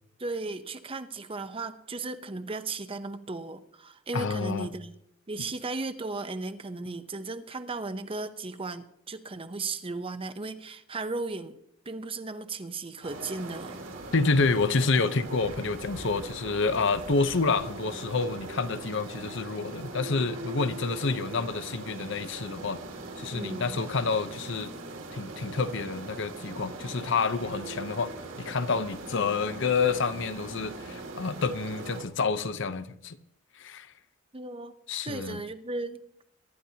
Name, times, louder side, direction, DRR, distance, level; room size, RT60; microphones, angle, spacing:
voice 1, 0.2-4.9 5.3-11.6 11.9-13.8 23.3-23.8 34.3-34.7 35.0-36.0, right 3 dB, 25° right, 0.7 m, -36 dB
voice 2, 4.1-4.7 14.1-22.8 23.2-24.7 25.1-33.2 33.6-33.9 34.9-35.4, left 4 dB, 65° left, 0.8 m, -28 dB
sound 1, 13.0-32.0, right 2 dB, 70° right, 2.5 m, -40 dB
23.5 x 11.5 x 2.8 m
head